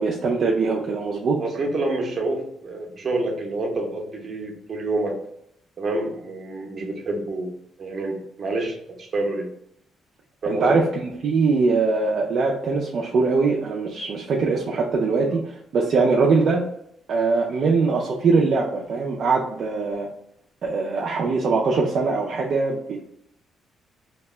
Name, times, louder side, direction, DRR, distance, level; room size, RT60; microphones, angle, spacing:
voice 1, 0.0-1.4 10.5-16.6 17.1-20.1 20.6-23.0, right 4 dB, 60° right, -2 dB, 0.4 m, -22 dB
voice 2, 1.4-5.2 5.8-7.5 7.8-9.5 10.4-10.8, right 2 dB, 45° right, 1 dB, 0.8 m, -27 dB
2.7 x 2.1 x 3.2 m, 0.72 s
cardioid pair, 90°, 0 cm